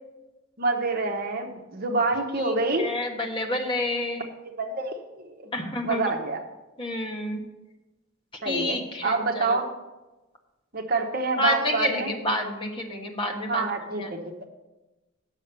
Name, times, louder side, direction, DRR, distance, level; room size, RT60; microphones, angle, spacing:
voice 1, 0.6-2.9 4.4-4.9 5.2-5.3 5.8-6.4 8.4-9.7 10.7-12.1 13.5-14.2, right 3 dB, 45° right, 3 dB, 1.1 m, -27 dB
voice 2, 2.4-4.3 5.5-6.1 6.8-7.4 8.4-9.6 11.4-13.7 14.0-14.1, left 1 dB, 25° left, 1 dB, 1.3 m, -29 dB
9.2 x 6.5 x 6.7 m, 1.1 s
head